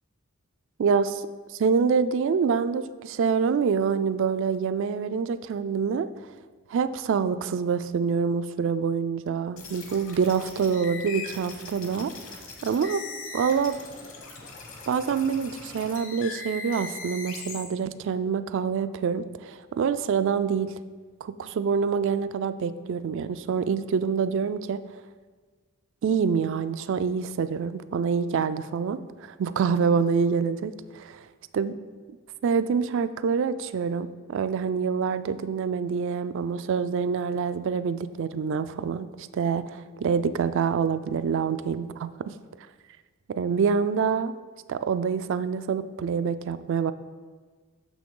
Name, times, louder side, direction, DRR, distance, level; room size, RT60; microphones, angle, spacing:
voice 1, 0.8-1.3 1.5-6.1 6.7-13.0 13.3-13.8 14.9-20.7 21.2-24.8 26.0-31.3 31.5-31.7 32.4-39.1 39.3-42.3 43.3-44.3 44.7-46.9, right 6 dB, 60° right, 13 dB, 0.3 m, -26 dB
sound 1, 9.6-17.6, left 4 dB, 65° left, 1.1 m, -40 dB
6.8 x 6.0 x 3.8 m, 1.5 s
head